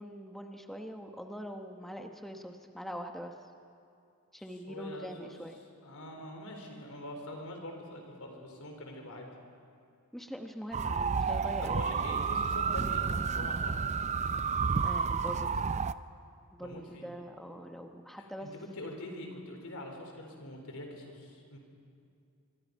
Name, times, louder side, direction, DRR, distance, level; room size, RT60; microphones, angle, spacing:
voice 1, 0.0-3.3 4.3-5.6 10.1-11.8 14.8-15.7 16.5-18.5, equal, ahead, 3 dB, 1.0 m, -43 dB
voice 2, 4.7-5.3 5.8-9.3 11.6-13.7 16.6-17.1 18.1-21.6, left 1 dB, 75° left, 2 dB, 4.2 m, -44 dB
sound 1, 10.7-15.9, right 5 dB, 30° right, 0.5 m, -30 dB
25.5 x 24.0 x 5.4 m, 2.5 s
head